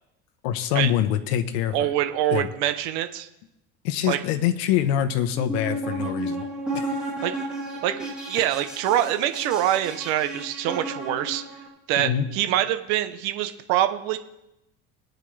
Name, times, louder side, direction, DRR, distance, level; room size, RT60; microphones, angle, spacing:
voice 1, 0.4-1.9 2.3-2.5 3.8-6.4 6.7-7.0 12.0-12.3, left 10 dB, 80° left, 7 dB, 1.0 m, -25 dB
voice 2, 1.7-3.3 4.1-4.2 7.2-7.4 7.8-11.4 11.9-14.2, right 12 dB, 55° right, 9 dB, 0.9 m, -25 dB
sound 1, 5.3-11.7, right 1 dB, 5° right, 3.4 m, -33 dB
21.0 x 9.3 x 3.3 m, 0.91 s
cardioid pair, 170°, 31 cm